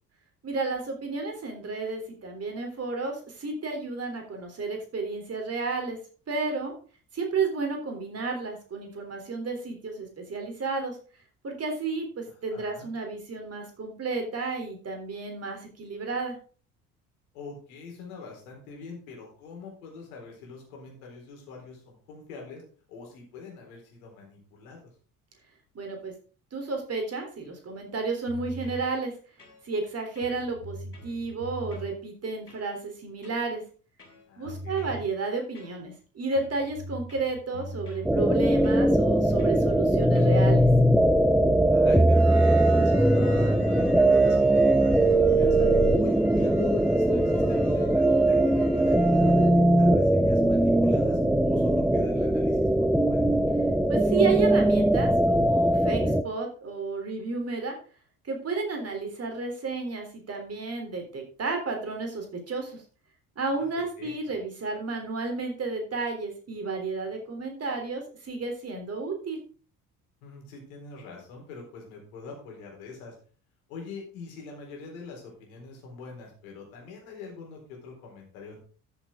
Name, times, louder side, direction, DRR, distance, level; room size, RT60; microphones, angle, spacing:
voice 1, 0.4-6.0 6.3-6.7 7.1-11.0 11.4-16.4 25.7-26.1 26.5-29.1 29.6-33.6 34.4-40.7 53.9-57.8 58.2-62.8 63.4-69.4, right 4 dB, 35° right, 4 dB, 3.6 m, -32 dB
voice 2, 12.5-12.9 17.3-22.6 22.9-24.8 34.3-35.0 41.7-45.7 46.0-49.5 49.8-53.3 63.6-63.7 64.0-64.1 70.2-73.1 73.7-78.6, left 4 dB, 65° left, 0 dB, 4.2 m, -44 dB
sound 1, 28.3-28.9 29.4-29.9 30.2-31.9 32.5-32.7 33.2-33.5 34.0-35.1 35.6-36.0 36.3-38.1 38.6-38.9 39.4-39.6 40.2-40.4, equal, 85° left, 1.7 m, -42 dB
sound 2, 38.0-56.2, right 1 dB, ahead, 0.5 m, -21 dB
sound 3, 42.1-49.5, right 1 dB, 90° right, 2.2 m, -43 dB
13.5 x 7.1 x 3.8 m, 0.38 s
figure-of-eight pair, 55°, 44 cm